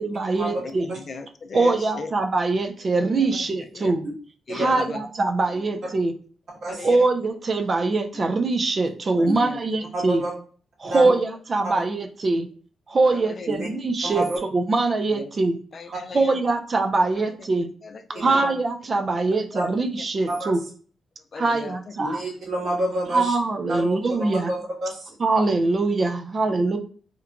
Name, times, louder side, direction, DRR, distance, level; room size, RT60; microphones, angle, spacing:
voice 1, 0.0-0.8 1.5-4.0 4.5-6.1 6.8-10.2 10.8-12.5 12.9-14.3 14.5-15.6 16.1-17.7 18.2-20.6 21.3-22.2 23.1-24.5 25.2-26.8, right 3 dB, 40° right, 6 dB, 0.4 m, -23 dB
voice 2, 0.6-2.1 3.2-3.5 3.7-3.9 4.5-5.0 6.7-7.1 9.2-9.6 13.1-13.5 15.1-15.2 15.7-16.4 17.8-18.4 21.3-21.7, left 4 dB, 45° left, 8 dB, 0.4 m, -36 dB
voice 3, 9.9-10.3 10.8-11.1 11.6-11.7 13.5-13.7 14.0-14.4 18.3-18.5 19.5-19.7 20.3-20.5 22.0-23.4 23.7-25.1, right 1 dB, 65° right, -5 dB, 1.4 m, -28 dB
2.9 x 2.1 x 2.4 m, 0.43 s
cardioid pair, 95°, 0 cm